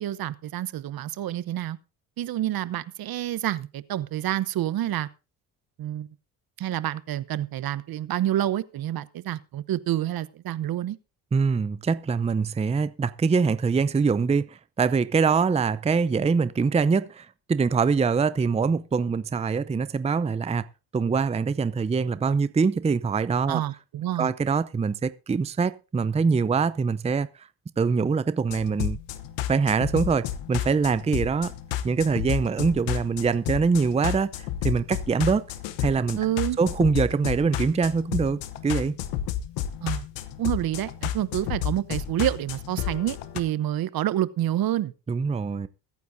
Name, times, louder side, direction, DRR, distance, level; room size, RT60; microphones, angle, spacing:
voice 1, 0.0-1.8 2.2-5.1 5.8-6.1 6.6-11.0 23.5-24.3 36.2-36.6 39.8-40.0 40.4-44.9, right 12 dB, 60° right, 0.9 m, -28 dB
voice 2, 11.3-20.7 20.9-23.6 24.2-27.5 27.8-29.0 29.5-31.5 31.8-34.3 34.6-35.5 35.8-36.2 36.6-39.0 45.1-45.7, right 5 dB, 15° right, 0.6 m, -24 dB
sound 1, 28.5-43.4, left 11 dB, 85° left, 1.0 m, -32 dB
22.0 x 9.3 x 2.7 m
supercardioid pair, 70°, 41 cm